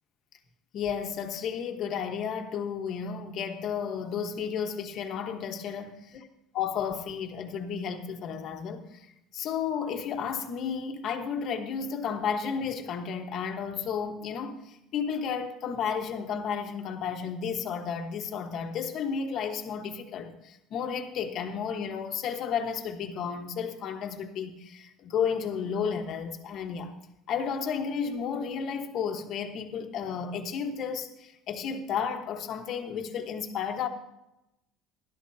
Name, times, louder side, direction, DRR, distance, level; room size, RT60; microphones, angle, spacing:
voice 1, 0.7-6.0 6.5-9.1 9.3-26.9 27.3-33.9, left 7 dB, 40° left, 1.3 m, -32 dB
18.0 x 12.5 x 2.8 m
cardioid pair, 170°, 0 cm